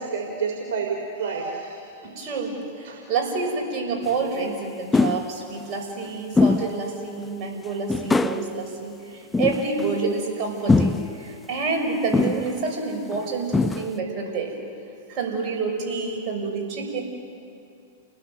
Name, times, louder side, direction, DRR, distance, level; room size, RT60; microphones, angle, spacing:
voice 1, 0.0-1.8 2.8-3.0, right 5 dB, 60° right, 0 dB, 3.9 m, -29 dB
voice 2, 2.0-14.5 15.1-17.0, right 4 dB, 40° right, 1 dB, 6.1 m, -28 dB
sound 1, 4.1-4.2 4.9-5.3 6.4-6.8 7.2-7.3 7.9-8.5 9.3-9.9 10.7-11.1 12.1-12.6 13.1-13.2 13.5-14.0, left 3 dB, 10° left, 0.7 m, -21 dB
30.0 x 19.0 x 7.9 m, 2.6 s
hypercardioid pair, 115°, 0 cm